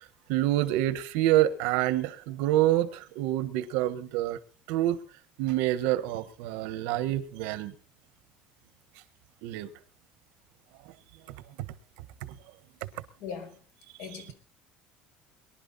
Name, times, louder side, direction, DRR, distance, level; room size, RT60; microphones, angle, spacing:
voice 1, 0.3-4.4 4.7-5.0 5.4-7.7 9.4-9.7, right 14 dB, 85° right, 1.4 m, -27 dB
voice 2, 13.2-13.6 14.0-14.3, left 7 dB, 65° left, 4.8 m, -39 dB
22.5 x 11.5 x 4.2 m
cardioid pair, 170°, 3 cm